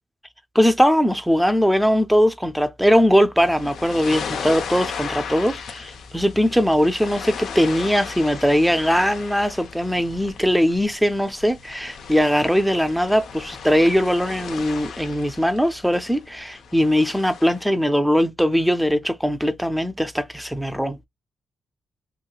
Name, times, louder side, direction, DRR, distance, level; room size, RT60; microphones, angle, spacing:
voice 1, 0.5-21.0, equal, ahead, 0.4 m, -20 dB
sound 1, 3.4-17.7, left 6 dB, 75° left, 0.5 m, -36 dB
3.0 x 2.6 x 2.3 m
cardioid pair, 70°, 0 cm